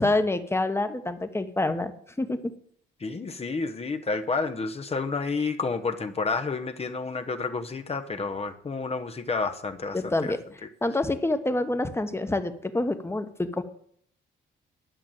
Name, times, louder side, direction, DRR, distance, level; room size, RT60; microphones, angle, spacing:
voice 1, 0.0-1.9 2.2-2.4 9.9-10.4 10.8-13.6, left 2 dB, 10° left, 1.2 m, -27 dB
voice 2, 3.0-10.4, left 4 dB, 30° left, 1.0 m, -30 dB
11.0 x 6.0 x 9.0 m
cardioid pair, 90°, 20 cm